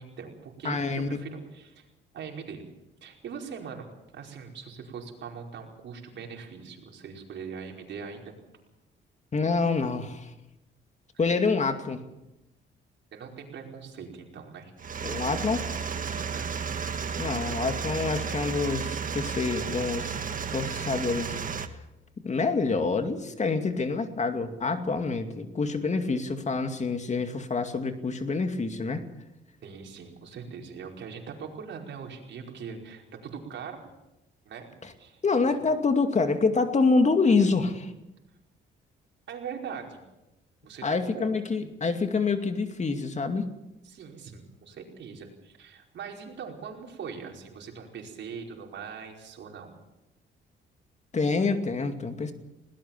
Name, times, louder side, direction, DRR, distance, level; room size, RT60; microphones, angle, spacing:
voice 1, 0.0-1.9 2.1-2.6 3.0-8.3 11.1-11.2 13.1-14.7 16.3-16.6 29.6-33.9 34.4-34.7 35.0-35.2 39.3-40.0 40.6-41.3 43.8-49.7, right 6 dB, 65° right, 1 dB, 5.0 m, -41 dB
voice 2, 0.6-1.2 9.3-10.3 11.2-12.0 15.0-15.7 17.2-20.2 20.5-21.3 22.2-29.0 35.2-37.9 40.8-43.5 51.1-52.3, left 4 dB, 35° left, 7 dB, 2.4 m, -26 dB
sound 1, 14.8-21.7, right 6 dB, 40° right, 1.6 m, -33 dB
20.5 x 18.5 x 7.4 m, 0.95 s
cardioid pair, 90°, 20 cm